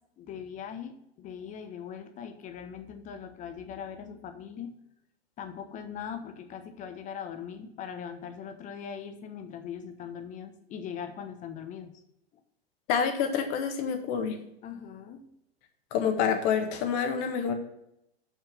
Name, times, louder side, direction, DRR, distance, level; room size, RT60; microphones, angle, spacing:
voice 1, 0.2-4.8 5.4-11.9 14.6-15.3, left 8 dB, 25° left, 8 dB, 1.1 m, -40 dB
voice 2, 12.9-14.4 15.9-17.5, left 7 dB, 40° left, 6 dB, 1.5 m, -27 dB
6.5 x 6.1 x 6.1 m, 0.79 s
figure-of-eight pair, 100°, 31 cm